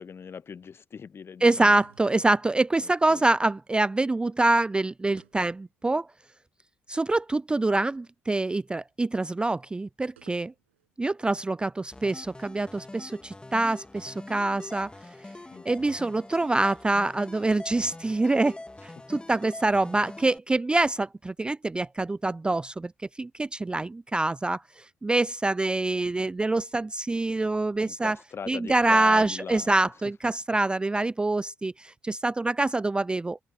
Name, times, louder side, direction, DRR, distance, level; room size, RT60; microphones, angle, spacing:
voice 1, 0.0-1.8 2.8-3.3 15.5-15.9 19.0-19.2 27.8-29.7 30.5-30.6, left 6 dB, 40° left, 1.2 m, -41 dB
voice 2, 1.4-6.1 6.9-10.5 11.0-14.9 15.7-22.9 23.2-28.2 28.5-33.4, right 2 dB, 15° right, 0.3 m, -25 dB
sound 1, 1.7-2.5 5.2-6.2 6.5-6.6 10.2-11.0, right 12 dB, 80° right, 7.5 m, -59 dB
sound 2, 11.9-20.4, left 2 dB, 15° left, 2.1 m, -44 dB
open air
figure-of-eight pair, 45°, 6 cm